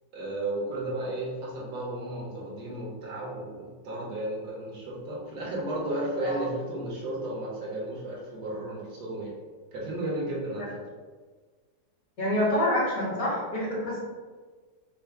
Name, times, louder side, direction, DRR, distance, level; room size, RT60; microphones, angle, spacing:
voice 1, 0.1-9.3 9.7-10.7, right 1 dB, 75° right, -5 dB, 1.8 m, -33 dB
voice 2, 12.2-14.0, left 1 dB, 60° left, -6 dB, 1.8 m, -27 dB
4.5 x 2.2 x 4.5 m, 1.4 s
omnidirectional pair, 1.8 m